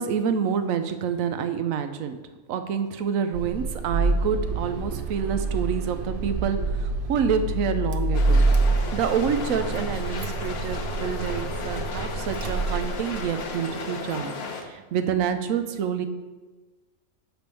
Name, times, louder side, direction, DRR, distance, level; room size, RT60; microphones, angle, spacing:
voice 1, 0.0-2.2 2.5-8.5 8.9-14.4 14.6-16.1, right 7 dB, 75° right, 9 dB, 1.0 m, -27 dB
Car / Engine starting, 3.3-13.4, right 2 dB, 55° right, 0.6 m, -27 dB
sound 1, 8.1-14.6, left 4 dB, 50° left, 1.0 m, -34 dB
9.1 x 3.4 x 6.8 m, 1.2 s
omnidirectional pair, 1.5 m